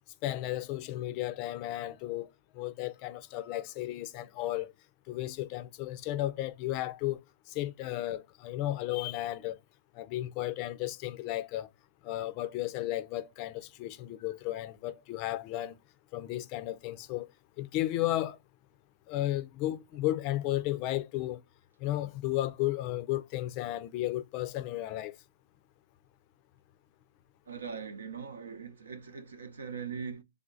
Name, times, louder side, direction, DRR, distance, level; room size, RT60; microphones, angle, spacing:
voice 1, 0.2-2.3 2.5-4.7 5.1-7.2 7.5-9.6 9.9-11.7 12.0-15.8 16.1-17.3 17.6-18.4 19.1-21.4 21.8-25.2, left 15 dB, 35° left, 0.4 m, -34 dB
voice 2, 27.5-30.2, right 6 dB, 85° right, 0.8 m, -41 dB
3.4 x 2.4 x 3.9 m
hypercardioid pair, 140°, 0 cm